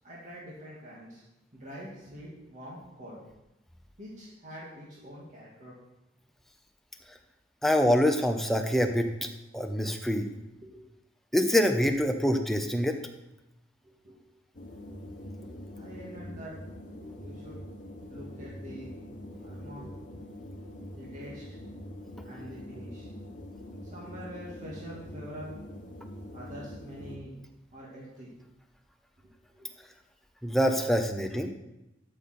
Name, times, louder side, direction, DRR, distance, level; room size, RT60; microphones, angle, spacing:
voice 1, 0.0-1.2 1.5-3.2 4.0-5.7 10.6-10.9 13.8-14.2 14.9-15.0 15.4-16.5 17.0-17.6 18.1-20.0 20.9-21.4 22.2-23.1 23.6-25.6 26.3-27.4 27.7-28.3 29.2-29.7, equal, 45° right, -6 dB, 2.0 m, -45 dB
voice 2, 7.6-9.1 9.5-10.3 11.3-13.0 30.4-31.5, equal, ahead, 4 dB, 0.7 m, -25 dB
sound 1, 14.5-27.2, left 1 dB, 45° left, 1.2 m, -44 dB
12.5 x 5.5 x 4.4 m, 0.94 s
head